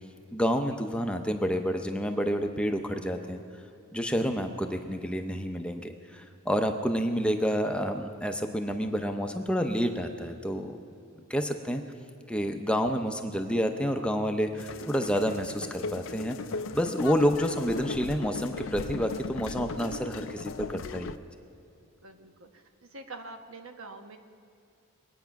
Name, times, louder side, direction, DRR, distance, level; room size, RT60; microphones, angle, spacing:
voice 1, 0.3-3.4 3.9-10.8 11.3-11.8 12.3-16.4 16.7-21.1, equal, 5° left, 5 dB, 0.6 m, -29 dB
sound 1, 14.6-21.2, left 4 dB, 60° left, 0.5 m, -37 dB
voice 2, 22.0-22.6 22.9-24.2, right 2 dB, 70° right, 6 dB, 1.1 m, -45 dB
22.5 x 9.2 x 5.9 m, 2.7 s
head